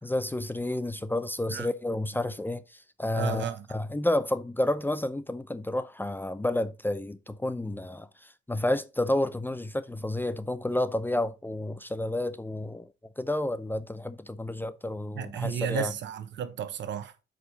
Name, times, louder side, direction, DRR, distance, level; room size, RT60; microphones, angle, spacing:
voice 1, 0.0-12.9 13.2-15.9, left 1 dB, 10° left, 0.6 m, -30 dB
voice 2, 3.1-3.6 15.2-17.1, right 9 dB, 65° right, 1.1 m, -32 dB
8.0 x 5.2 x 4.1 m
cardioid pair, 90°, 20 cm